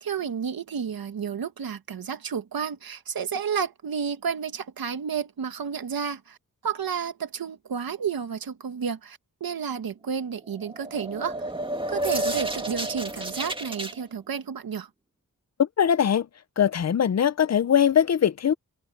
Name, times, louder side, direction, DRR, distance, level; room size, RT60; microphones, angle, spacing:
voice 1, 0.0-6.4 6.6-11.4 11.9-14.9, right 7 dB, 80° right, 1.9 m, -31 dB
sound 1, 10.6-13.9, right 1 dB, 15° right, 2.1 m, -31 dB
voice 2, 15.6-16.3 16.6-18.5, left 8 dB, 50° left, 0.7 m, -21 dB
wide cardioid pair, 155°, 35 cm